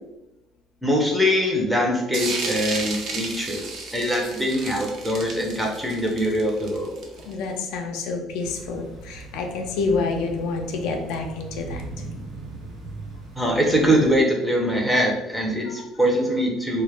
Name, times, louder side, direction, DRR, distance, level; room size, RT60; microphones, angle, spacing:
voice 1, 0.8-3.6 3.9-7.0 13.4-16.8, equal, 5° right, -1 dB, 0.5 m, -22 dB
sound 1, 2.1-7.4, right 3 dB, 55° right, 0.5 m, -32 dB
voice 2, 7.3-11.8 15.7-15.8, left 4 dB, 80° left, 3 dB, 0.4 m, -28 dB
sound 2, 8.4-14.2, right 2 dB, 75° right, 1.0 m, -39 dB
2.2 x 2.0 x 3.2 m, 0.94 s
cardioid pair, 125°, 0 cm